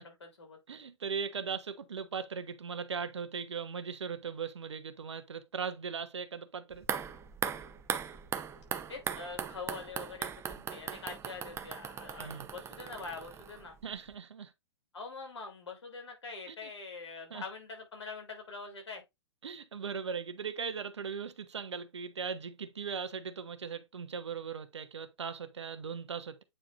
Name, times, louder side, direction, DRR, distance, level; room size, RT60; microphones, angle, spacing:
voice 1, 0.0-0.6 8.9-13.8 14.9-19.0, left 4 dB, 75° left, 3.3 m, -44 dB
voice 2, 0.7-6.9 12.2-12.4 13.8-14.5 16.5-16.7 17.3-17.4 19.4-26.4, right 6 dB, 80° right, 1.1 m, -39 dB
sound 1, 6.7-13.9 14.1-14.2, right 8 dB, 20° right, 0.7 m, -39 dB
8.7 x 4.9 x 2.5 m
figure-of-eight pair, 110°, 15 cm